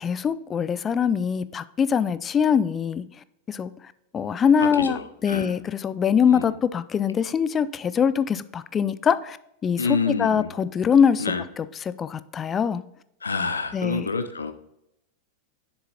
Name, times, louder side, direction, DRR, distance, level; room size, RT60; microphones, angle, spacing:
voice 1, 0.0-3.0 3.5-3.7 4.1-9.4 9.6-12.8 13.7-14.1, left 7 dB, 25° left, 16 dB, 0.3 m, -23 dB
voice 2, 4.6-5.0 5.3-5.5 6.3-6.5 9.8-10.5 11.2-11.4 13.2-14.5, left 4 dB, 75° left, 9 dB, 0.6 m, -27 dB
7.4 x 6.7 x 2.8 m, 0.81 s
figure-of-eight pair, 90°, 0 cm